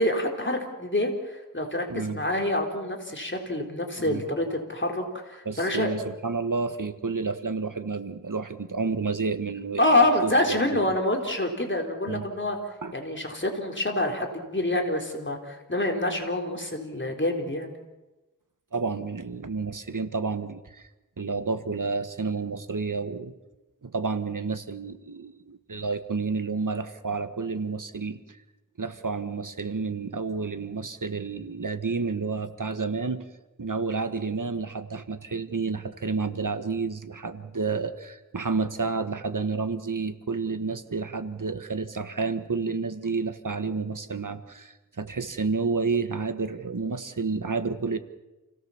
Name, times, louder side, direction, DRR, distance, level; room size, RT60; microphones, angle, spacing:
voice 1, 0.0-6.0 9.8-12.6 12.9-17.7, left 1 dB, 35° left, 2 dB, 3.9 m, -26 dB
voice 2, 5.4-10.9 12.1-12.2 12.8-12.9 18.7-20.8 21.2-23.3 23.8-28.2 28.8-33.3 33.6-48.0, right 4 dB, 65° right, 10 dB, 1.6 m, -30 dB
28.5 x 17.5 x 7.3 m, 1.1 s
wide cardioid pair, 60°, 34 cm